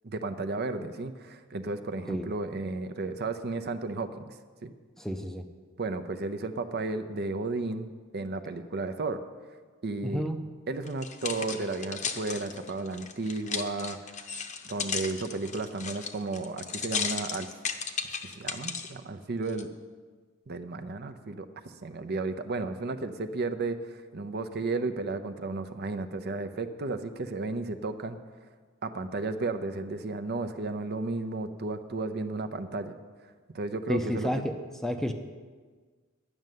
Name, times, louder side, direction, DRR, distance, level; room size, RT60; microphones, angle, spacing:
voice 1, 0.0-4.3 4.6-4.7 5.8-9.2 9.8-10.2 10.7-14.3 14.7-17.5 18.2-19.7 20.5-21.5 21.8-28.2 28.8-32.9 33.5-34.3, right 3 dB, 50° right, 9 dB, 0.6 m, -33 dB
voice 2, 5.0-5.5 10.0-10.4 33.9-34.6 34.8-35.1, equal, ahead, 6 dB, 0.6 m, -30 dB
sound 1, 10.9-18.9 19.5-19.6, left 6 dB, 35° left, 0.7 m, -35 dB
10.5 x 6.6 x 9.1 m, 1.5 s
head